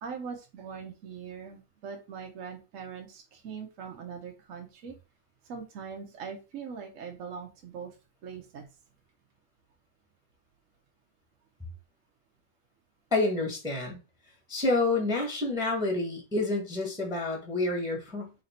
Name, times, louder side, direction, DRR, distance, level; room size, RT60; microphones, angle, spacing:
voice 1, 0.0-4.9 5.5-7.9 8.2-8.7, right 6 dB, 65° right, 2 dB, 0.9 m, -41 dB
voice 2, 13.1-14.0 14.5-18.3, left 2 dB, 5° right, 0 dB, 0.8 m, -28 dB
3.3 x 2.6 x 4.2 m, 0.29 s
omnidirectional pair, 1.8 m